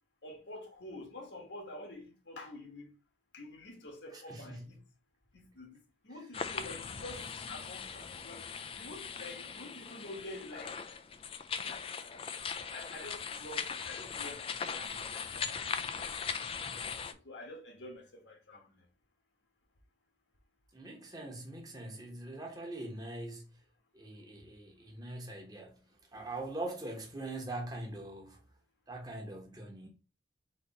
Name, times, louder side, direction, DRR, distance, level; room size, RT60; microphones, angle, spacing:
voice 1, 0.2-2.9 3.3-4.8 5.3-8.4 8.8-10.7 11.5-11.7 12.7-14.4 14.7-14.9 15.1-15.4 15.8-16.4 17.2-18.8, left 1 dB, 80° left, 1.5 m, -48 dB
voice 2, 4.1-4.8 20.7-23.6 23.9-28.4 28.9-29.9, right 2 dB, 20° right, 1.1 m, -42 dB
sound 1, 6.3-17.1, left 6 dB, 30° left, 0.3 m, -40 dB
4.1 x 2.9 x 4.1 m
head